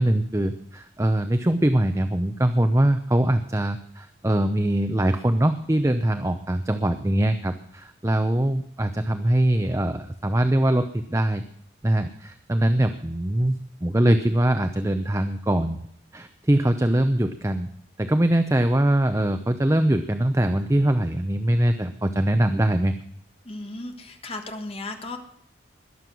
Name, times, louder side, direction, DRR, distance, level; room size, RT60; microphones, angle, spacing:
voice 1, 0.0-11.4 11.8-15.8 16.1-17.7 18.0-22.9, right 1 dB, 15° right, 8 dB, 0.6 m, -22 dB
voice 2, 23.4-25.2, left 2 dB, 30° left, 5 dB, 1.4 m, -35 dB
21.0 x 7.6 x 6.2 m, 0.70 s
head